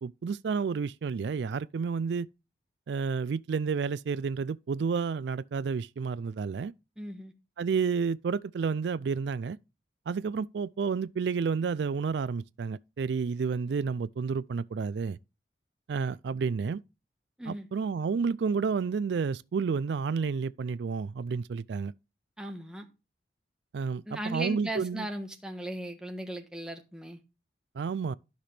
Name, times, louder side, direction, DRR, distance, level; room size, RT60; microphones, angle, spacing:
voice 1, 0.0-2.3 2.9-6.7 7.6-9.6 10.1-15.2 15.9-16.8 17.5-21.9 23.7-25.1 27.8-28.1, right 5 dB, 75° right, 0.3 m, -30 dB
voice 2, 7.0-7.3 17.4-17.7 22.4-22.9 24.1-27.2, right 1 dB, 5° right, 1.2 m, -37 dB
12.5 x 5.9 x 3.3 m
head